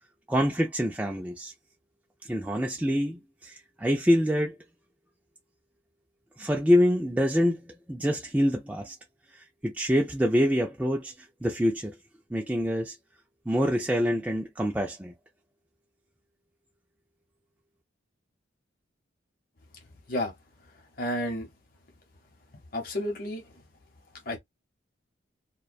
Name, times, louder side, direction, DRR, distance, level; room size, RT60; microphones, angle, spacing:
voice 1, 0.3-1.5 2.2-4.6 6.4-7.6 7.9-8.9 9.3-11.1 11.4-12.0 12.3-13.0 13.5-15.1, equal, 5° right, 0.3 m, -26 dB
voice 2, 21.0-21.5 22.7-23.4 24.3-24.4, left 1 dB, 45° left, 0.8 m, -30 dB
2.3 x 2.1 x 2.5 m
head